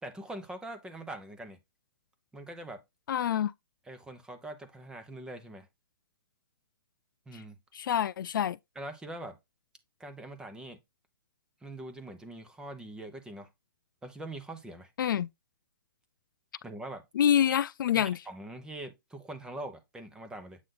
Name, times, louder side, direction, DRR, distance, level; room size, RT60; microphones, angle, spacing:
voice 1, 0.0-1.6 2.3-2.8 3.8-5.7 7.3-7.6 8.7-9.4 10.0-10.8 11.6-13.5 14.0-14.9 16.6-17.0 17.9-20.6, right 1 dB, 5° right, 0.9 m, -43 dB
voice 2, 3.1-3.5 7.7-8.6 15.0-15.3 17.2-18.2, left 9 dB, 60° left, 0.4 m, -26 dB
8.0 x 3.2 x 3.9 m
hypercardioid pair, 145°, 12 cm